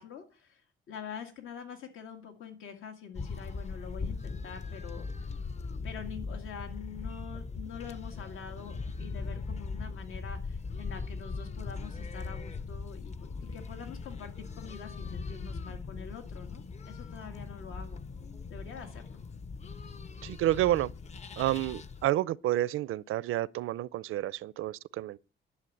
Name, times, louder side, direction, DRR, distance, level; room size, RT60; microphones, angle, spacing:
voice 1, 0.0-5.3 5.8-18.0 18.5-19.2, left 7 dB, 80° left, 2.1 m, -45 dB
sound 1, 3.1-22.1, left 4 dB, 35° left, 0.7 m, -40 dB
voice 2, 20.2-20.9 21.4-25.2, right 14 dB, 85° right, 0.5 m, -29 dB
11.0 x 6.8 x 9.0 m
cardioid pair, 140°, 21 cm